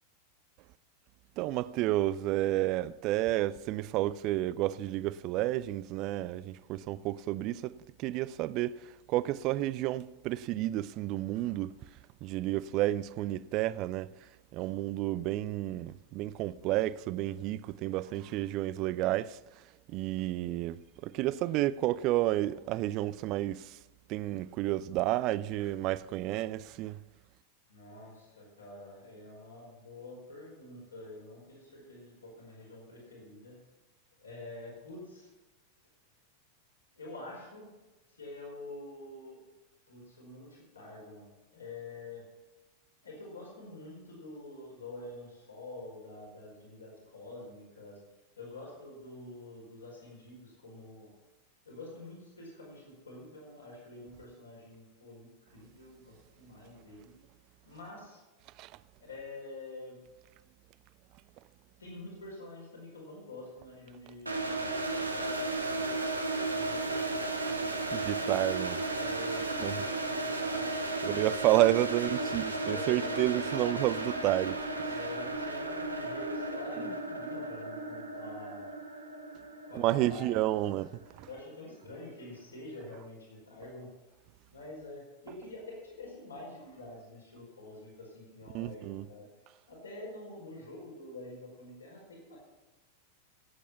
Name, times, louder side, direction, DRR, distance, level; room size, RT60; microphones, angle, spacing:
voice 1, 1.4-8.8 9.1-11.7 12.2-14.1 14.5-19.4 19.9-23.8 24.1-27.0 58.6-58.7 67.9-68.8 69.6-69.8 71.0-74.6 79.7-80.9 81.2-81.3 88.5-89.1, right 15 dB, 40° right, 0.4 m, -31 dB
voice 2, 27.7-33.6 34.2-35.3 37.0-37.7 38.1-39.4 39.9-41.2 41.5-42.2 43.0-48.0 48.4-51.1 51.6-57.1 57.6-58.2 59.0-60.0 61.8-65.3 66.5-68.3 68.9-71.2 72.1-73.4 74.8-78.7 79.3-80.8 81.2-83.9 84.5-89.3 89.7-92.4, left 1 dB, 75° left, 4.7 m, -47 dB
sound 1, 64.3-81.1, right 2 dB, 80° right, 1.3 m, -34 dB
16.5 x 8.5 x 5.7 m
figure-of-eight pair, 90°, 0 cm